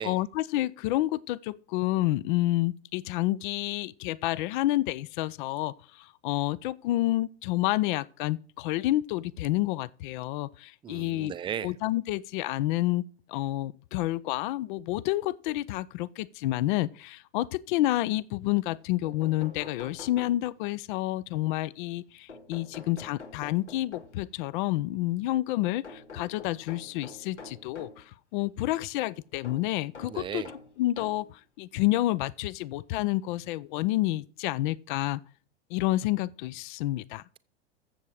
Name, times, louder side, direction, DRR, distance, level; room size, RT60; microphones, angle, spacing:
voice 1, 0.0-11.3 11.6-13.0 13.3-30.5 30.8-35.2 35.7-37.2, left 16 dB, 45° left, 0.6 m, -29 dB
voice 2, 10.8-11.7 30.1-30.5, right 9 dB, 15° right, 0.5 m, -35 dB
sound 1, 19.0-20.8 22.3-24.4 25.8-28.1 29.4-31.3 32.2-32.3 33.6-33.7 34.0-34.1, left 3 dB, 85° left, 2.6 m, -47 dB
14.0 x 7.4 x 4.8 m
hypercardioid pair, 105°, 34 cm